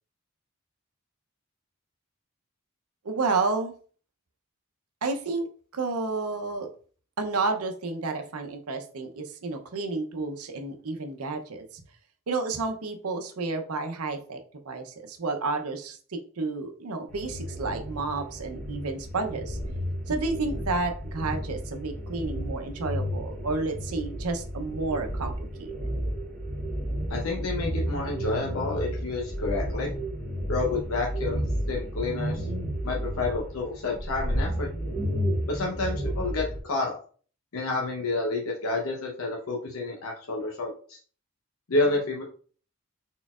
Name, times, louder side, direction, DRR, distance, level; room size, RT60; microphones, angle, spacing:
voice 1, 3.0-3.7 5.0-5.5 5.7-6.7 7.2-11.8 12.3-14.4 14.6-19.6 20.1-25.7, right 3 dB, 90° right, 5 dB, 0.7 m, -31 dB
sound 1, 17.1-36.6, equal, 5° left, 1.1 m, -32 dB
voice 2, 27.1-29.9 30.5-32.5 32.8-34.7 35.5-37.0 37.5-41.0 41.7-42.2, left 3 dB, 75° left, -1 dB, 0.8 m, -29 dB
4.2 x 3.8 x 2.4 m, 0.42 s
head